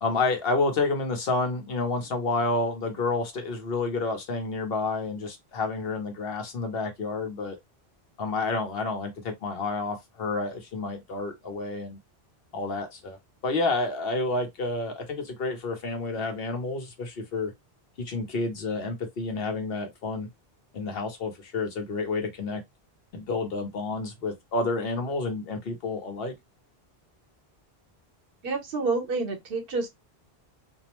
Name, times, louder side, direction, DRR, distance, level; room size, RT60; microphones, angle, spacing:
voice 1, 0.0-7.6 8.2-12.0 12.5-13.2 13.4-17.5 18.0-20.3 20.7-22.6 23.1-26.3, left 3 dB, 70° left, 1.0 m, -29 dB
voice 2, 28.4-29.9, right 3 dB, 65° right, 1.0 m, -28 dB
2.6 x 2.0 x 2.9 m
omnidirectional pair, 1.0 m